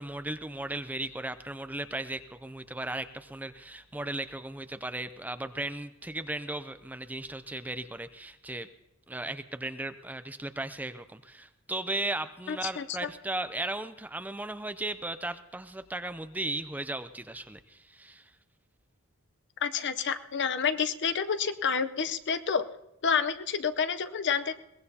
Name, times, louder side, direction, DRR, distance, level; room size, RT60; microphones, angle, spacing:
voice 1, 0.0-8.7 9.1-18.3, right 2 dB, 10° right, 10 dB, 0.5 m, -36 dB
voice 2, 12.5-13.1 19.6-22.6 23.0-24.5, left 6 dB, 55° left, 10 dB, 0.7 m, -29 dB
22.0 x 19.0 x 2.8 m, 0.91 s
head